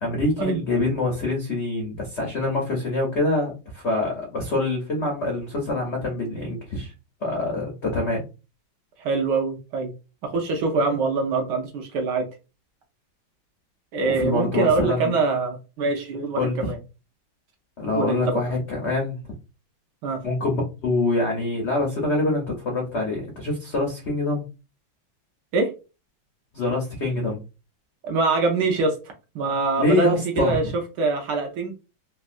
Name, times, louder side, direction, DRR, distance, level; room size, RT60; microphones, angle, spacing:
voice 1, 0.0-6.9 7.2-8.2 14.0-15.1 16.3-16.7 17.8-19.2 20.2-24.4 26.5-27.4 29.8-30.6, left 2 dB, 75° left, 0.6 m, -25 dB
voice 2, 9.0-9.9 10.2-12.3 13.9-16.8 17.9-18.4 20.0-20.2 25.5-25.7 28.0-28.9 29.3-30.1 30.4-31.7, right 3 dB, 70° right, 1.1 m, -24 dB
3.4 x 2.1 x 2.5 m
omnidirectional pair, 2.2 m